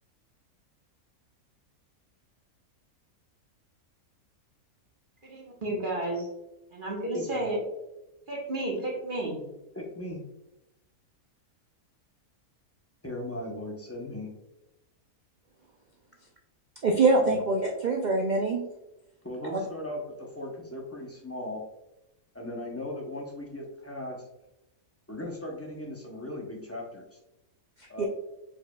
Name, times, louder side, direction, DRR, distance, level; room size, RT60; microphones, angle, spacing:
voice 1, 5.2-6.3 6.7-7.6 8.3-9.4, right 1 dB, 35° right, -3 dB, 1.3 m, -32 dB
voice 2, 9.7-10.2 13.0-14.3 17.2-17.4 19.2-21.6 22.3-24.2 25.1-27.2 27.9-28.1, left 1 dB, 15° left, -1 dB, 0.5 m, -38 dB
voice 3, 16.8-18.6 28.0-28.1, right 3 dB, 85° right, 1 dB, 0.4 m, -24 dB
4.7 x 4.5 x 2.3 m, 0.92 s
omnidirectional pair, 1.5 m